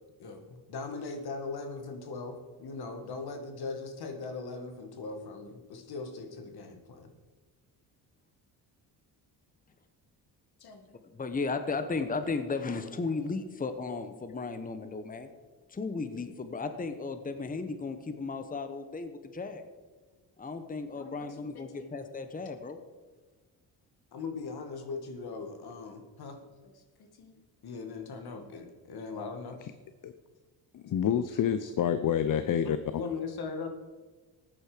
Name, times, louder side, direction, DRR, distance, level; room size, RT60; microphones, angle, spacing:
voice 1, 0.2-7.1 10.6-11.0 20.9-21.9 24.1-26.4 26.6-29.6 33.0-33.7, left 4 dB, 65° left, 6 dB, 2.0 m, -40 dB
voice 2, 11.0-15.3 15.7-19.7 20.4-22.8, left 4 dB, 20° left, 9 dB, 1.0 m, -35 dB
voice 3, 30.7-33.0, left 9 dB, 50° left, 11 dB, 0.7 m, -28 dB
14.0 x 9.8 x 5.1 m, 1.3 s
cardioid pair, 95°, 40 cm